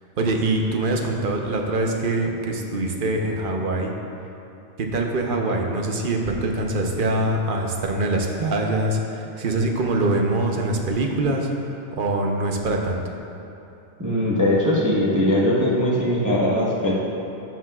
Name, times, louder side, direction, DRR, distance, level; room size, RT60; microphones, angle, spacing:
voice 1, 0.2-3.9 4.8-13.0, right 2 dB, 50° right, 2 dB, 0.9 m, -24 dB
voice 2, 14.0-16.9, left 1 dB, 15° right, -8 dB, 1.2 m, -20 dB
11.5 x 7.4 x 2.4 m, 2.9 s
omnidirectional pair, 1.2 m